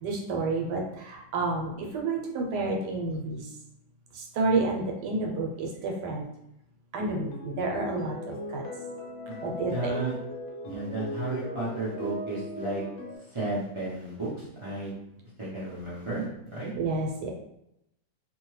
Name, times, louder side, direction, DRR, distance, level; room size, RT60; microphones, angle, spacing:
voice 1, 0.0-3.4 4.2-6.2 6.9-8.6 9.4-9.9 16.8-17.3, right 3 dB, 85° right, 0 dB, 1.2 m, -30 dB
sound 1, 7.0-13.2, left 1 dB, 70° left, 1.1 m, -38 dB
voice 2, 9.3-10.2 10.6-12.8 13.3-14.9 15.4-16.7, right 2 dB, 35° right, -8 dB, 0.4 m, -33 dB
2.7 x 2.2 x 3.1 m, 0.81 s
omnidirectional pair, 1.7 m